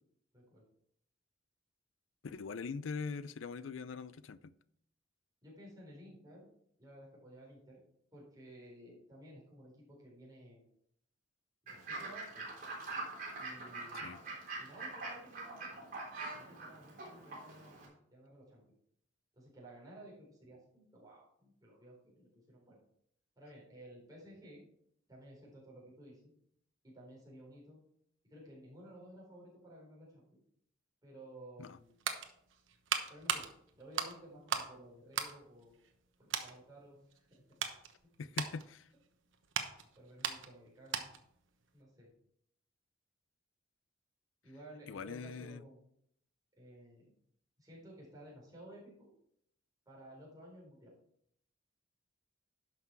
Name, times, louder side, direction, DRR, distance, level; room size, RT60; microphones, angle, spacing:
voice 1, 0.3-0.6 5.4-6.5 6.8-7.8 8.1-10.6 11.6-12.5 13.3-14.3 14.6-15.9 16.3-18.6 19.3-22.8 23.4-24.6 25.1-26.3 26.8-27.8 28.2-30.2 31.0-32.0 33.1-33.5 33.7-35.7 36.2-37.6 39.9-41.1 41.7-42.1 44.4-45.8 46.6-47.1 47.6-49.1 49.9-50.9, right 1 dB, 20° right, 4.0 m, -55 dB
voice 2, 2.2-4.5 13.9-14.2 31.6-31.8 38.2-38.9 44.9-45.6, left 5 dB, 90° left, 0.5 m, -42 dB
Fowl / Bird, 11.7-17.9, right 3 dB, 45° right, 3.6 m, -44 dB
sound 1, 31.6-34.8 35.1-36.0 36.3-36.6 37.1-41.3 41.6-41.8, right 7 dB, 85° right, 1.1 m, -39 dB
11.5 x 6.0 x 4.6 m
head